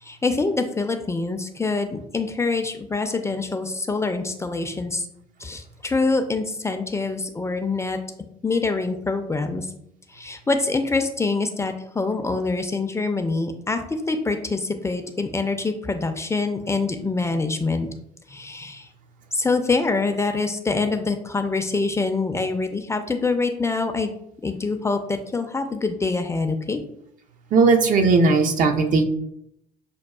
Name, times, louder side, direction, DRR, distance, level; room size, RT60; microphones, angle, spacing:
voice 1, 0.0-5.1 5.4-8.0 8.4-9.7 10.1-17.9 18.3-18.9 19.3-24.1 24.4-26.8, left 3 dB, 15° left, 6 dB, 0.5 m, -25 dB
voice 2, 27.5-29.0, right 4 dB, 50° right, 5 dB, 0.6 m, -17 dB
6.7 x 2.3 x 2.3 m, 0.75 s
hypercardioid pair, 60°, 18 cm